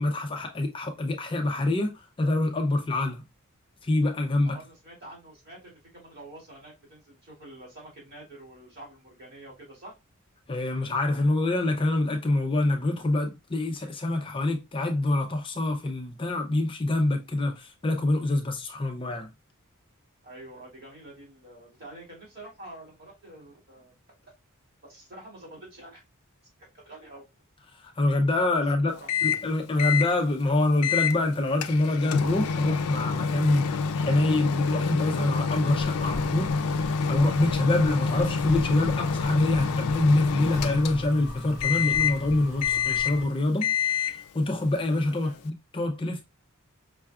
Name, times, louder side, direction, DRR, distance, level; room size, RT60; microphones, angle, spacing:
voice 1, 0.0-3.2 3.8-4.6 10.5-19.3 27.7-28.9 29.2-46.2, left 2 dB, 25° left, 0.4 m, -26 dB
voice 2, 4.4-9.9 20.2-23.9 24.9-26.0 26.8-27.2 28.9-29.1 45.2-45.4, right 1 dB, 50° right, 2.5 m, -47 dB
Microwave oven, 29.1-29.5 29.8-30.1 30.8-31.2 31.6-41.2 41.6-42.2 42.6-43.3 43.6-44.2, left 5 dB, 85° left, 0.4 m, -27 dB
sound 1, 35.7-43.2, left 1 dB, 25° right, 1.7 m, -38 dB
5.5 x 2.3 x 2.3 m
head